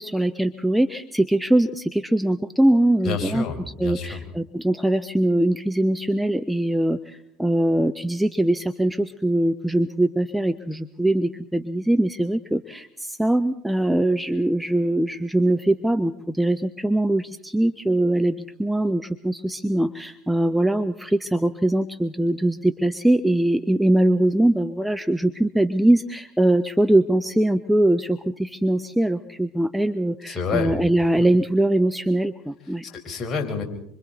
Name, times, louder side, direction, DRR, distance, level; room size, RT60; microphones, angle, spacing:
voice 1, 0.0-3.4 3.8-32.8, right 1 dB, ahead, 10 dB, 0.9 m, -22 dB
voice 2, 3.0-4.2 30.3-30.7 31.2-31.3 32.8-33.6, left 5 dB, 30° left, 2 dB, 4.9 m, -28 dB
26.0 x 25.0 x 4.1 m, 0.69 s
hypercardioid pair, 70°, 0 cm